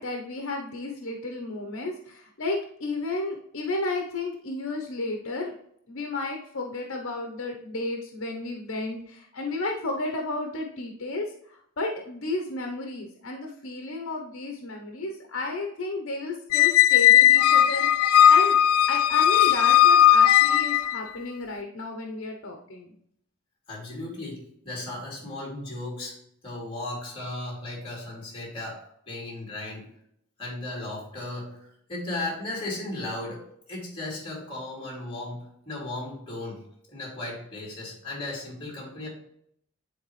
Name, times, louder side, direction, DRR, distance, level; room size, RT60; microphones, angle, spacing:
voice 1, 0.0-5.5 5.9-18.6 18.9-22.9, left 2 dB, 60° left, 2 dB, 0.9 m, -33 dB
Squeak, 16.5-21.0, left 11 dB, 80° left, 0.3 m, -17 dB
voice 2, 23.7-26.1 26.4-29.9 30.4-33.4 33.7-36.6 36.9-39.1, left 2 dB, 25° left, -4 dB, 2.8 m, -36 dB
10.0 x 4.0 x 3.2 m, 0.69 s
head